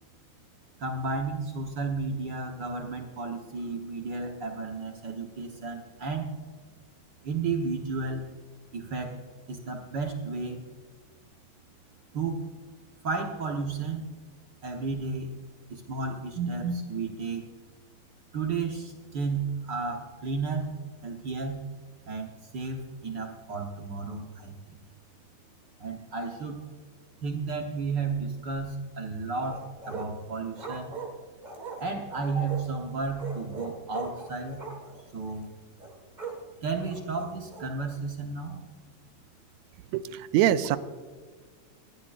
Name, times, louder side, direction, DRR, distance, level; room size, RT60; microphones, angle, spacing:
voice 1, 0.8-6.3 7.2-8.2 8.7-9.2 9.5-10.6 12.1-12.4 13.0-14.0 14.6-15.3 15.7-17.4 18.3-20.7 21.0-21.6 22.0-24.5 25.8-26.6 27.2-29.6 29.8-30.9 31.8-34.6 35.1-35.5 36.6-38.6, right 4 dB, 55° right, 2 dB, 1.3 m, -32 dB
sound 1, 29.4-30.2 30.6-32.7 33.2-35.1 35.3-35.4 35.8-36.4 36.8-37.7, right 4 dB, 25° right, 1.0 m, -40 dB
voice 2, 39.9-40.8, right 12 dB, 80° right, 12 dB, 1.8 m, -24 dB
19.5 x 13.0 x 2.5 m, 1.5 s
omnidirectional pair, 3.4 m